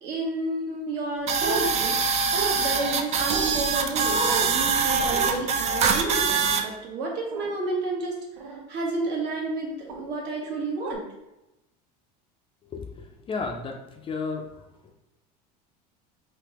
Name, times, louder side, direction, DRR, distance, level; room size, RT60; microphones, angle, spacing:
voice 1, 0.0-2.0 2.6-8.2 8.4-11.0, right 2 dB, 60° right, -1 dB, 1.2 m, -31 dB
sound 1, 1.3-6.6, right 5 dB, 35° right, 0.4 m, -24 dB
sound 2, 1.4-1.7 2.3-2.6 3.3-3.5 4.1-4.5 5.1-5.3 7.3-7.5 8.4-8.6 9.9-10.0 10.9-11.0, right 4 dB, 90° right, 0.7 m, -31 dB
voice 2, 13.3-13.8 14.0-14.4, left 4 dB, 25° left, 2 dB, 0.4 m, -31 dB
3.6 x 2.8 x 2.9 m, 0.93 s
supercardioid pair, 115°, 20 cm